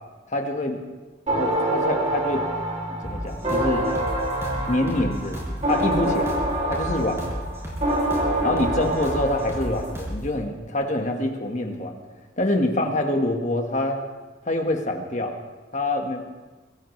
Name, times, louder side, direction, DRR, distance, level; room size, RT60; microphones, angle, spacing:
voice 1, 0.3-0.8 1.3-2.5 2.9-3.9 4.6-5.4 5.6-6.4 6.7-7.4 8.4-12.0 12.4-14.0 14.5-15.4 15.7-16.2, left 1 dB, 35° left, 3 dB, 1.5 m, -26 dB
sound 1, 1.3-10.0, right 1 dB, 35° right, 2.7 m, -26 dB
sound 2, 3.0-10.3, equal, 15° right, 5.3 m, -33 dB
23.5 x 15.5 x 3.2 m, 1.3 s
head